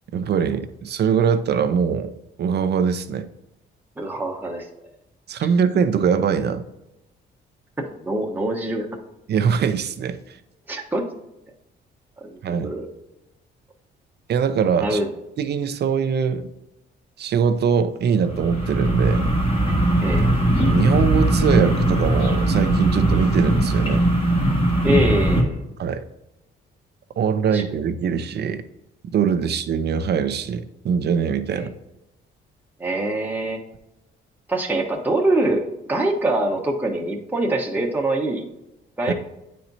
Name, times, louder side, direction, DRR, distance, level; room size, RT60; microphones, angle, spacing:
voice 1, 0.1-2.1 2.4-3.3 5.3-6.7 9.3-10.2 12.4-12.7 14.3-15.0 15.4-16.5 17.2-19.3 20.6-24.1 25.8-26.0 27.2-28.6 29.1-31.7 39.1-39.2, right 7 dB, 55° right, 11 dB, 0.6 m, -22 dB
voice 2, 4.0-4.7 7.8-8.9 10.7-11.0 12.2-12.9 14.8-15.1 20.0-20.3 24.8-25.6 27.5-27.6 31.5-31.7 32.8-33.6 34.5-38.4 39.0-39.1, right 1 dB, 10° right, -1 dB, 1.1 m, -24 dB
sound 1, 18.2-25.4, right 1 dB, 25° left, 1.8 m, -19 dB
9.2 x 4.4 x 2.7 m, 0.91 s
cardioid pair, 90°, 20 cm